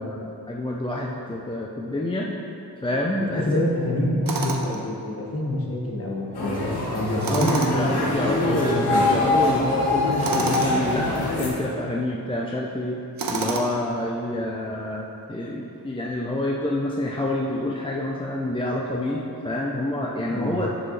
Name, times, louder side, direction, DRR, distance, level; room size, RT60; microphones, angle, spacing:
voice 1, 0.0-2.3 2.8-3.5 7.3-13.0 13.3-20.7, left 1 dB, 15° left, -2 dB, 0.5 m, -27 dB
voice 2, 3.3-9.1 20.3-20.6, left 1 dB, 40° left, -3 dB, 1.3 m, -27 dB
Tools, 4.3-4.8 7.2-7.9 10.2-10.8 13.2-13.9, right 4 dB, 65° right, 0.7 m, -28 dB
sound 1, 6.3-11.5, left 2 dB, 90° left, 1.2 m, -24 dB
7.6 x 6.3 x 3.1 m, 2.7 s
wide cardioid pair, 70°, 37 cm